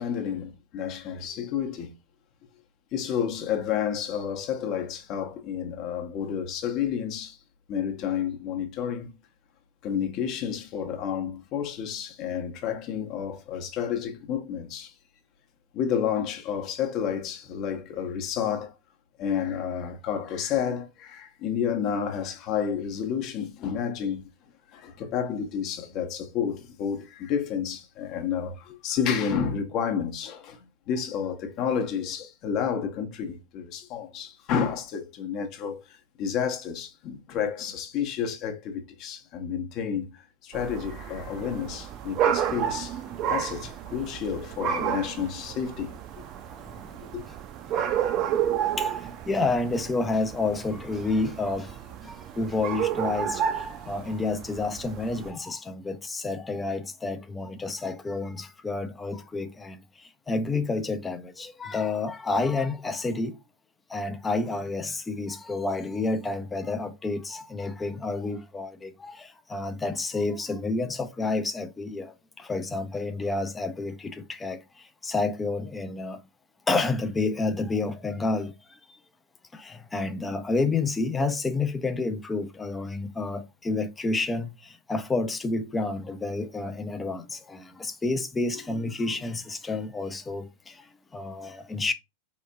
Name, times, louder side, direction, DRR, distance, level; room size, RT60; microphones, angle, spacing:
voice 1, 0.0-1.9 2.9-7.4 7.7-9.1 9.8-14.9 15.7-18.7 19.2-24.3 24.7-43.0 43.3-46.0 47.0-47.2, left 8 dB, 40° left, 0.8 m, -30 dB
sound 1, 40.5-55.3, right 9 dB, 35° right, 0.5 m, -31 dB
voice 2, 48.8-63.4 63.9-76.2 76.7-78.5 79.5-91.9, left 3 dB, 15° left, 0.4 m, -30 dB
4.3 x 2.9 x 2.4 m
figure-of-eight pair, 90°, 0 cm